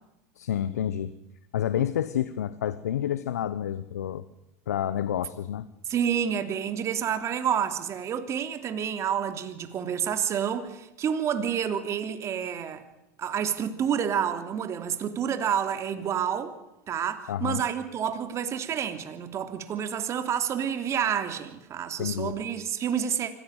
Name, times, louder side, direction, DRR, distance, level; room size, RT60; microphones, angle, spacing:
voice 1, 0.4-1.1 1.5-4.2 4.7-5.7 17.3-17.6 22.0-22.4, left 10 dB, 85° left, 1.0 m, -29 dB
voice 2, 5.9-12.8 13.2-16.6 16.9-23.3, right 8 dB, 35° right, 3.1 m, -29 dB
25.0 x 17.5 x 9.0 m
hypercardioid pair, 100°, 8 cm